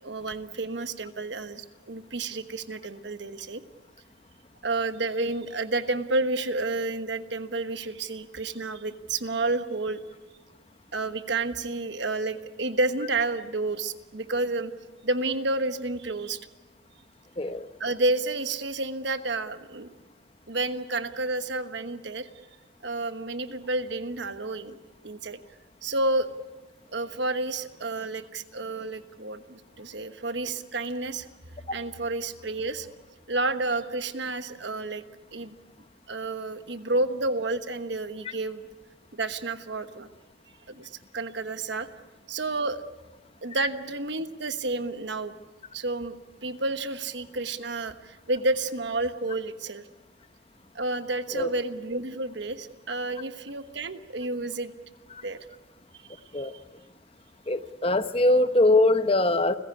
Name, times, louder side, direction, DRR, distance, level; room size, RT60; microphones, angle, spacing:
voice 1, 0.0-3.6 4.6-10.0 10.9-14.7 15.0-16.4 17.8-19.9 20.5-22.3 22.8-24.8 25.0-25.4 25.8-26.3 26.9-31.2 31.7-32.9 33.3-35.0 35.3-35.5 36.1-38.6 39.1-40.1 40.7-41.9 42.3-42.8 43.4-45.3 45.7-46.2 46.4-49.8 50.7-54.7 55.2-55.4 56.3-56.4, right 2 dB, 65° right, 10 dB, 1.2 m, -30 dB
voice 2, 57.5-59.6, left 2 dB, 30° left, 11 dB, 0.9 m, -22 dB
29.5 x 16.0 x 9.9 m, 1.2 s
head